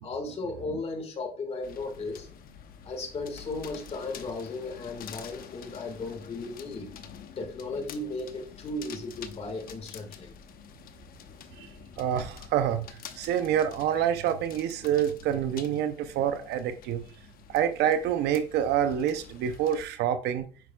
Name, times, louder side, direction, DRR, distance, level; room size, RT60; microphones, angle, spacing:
voice 1, 0.0-2.3 2.8-6.9 7.4-10.3, left 2 dB, 40° left, 1.6 m, -36 dB
sound 1, 1.6-19.9, left 8 dB, 60° left, 0.8 m, -48 dB
voice 2, 12.0-17.0 17.5-20.5, right 9 dB, 80° right, 0.5 m, -27 dB
9.1 x 5.4 x 2.2 m
cardioid pair, 110°, 17 cm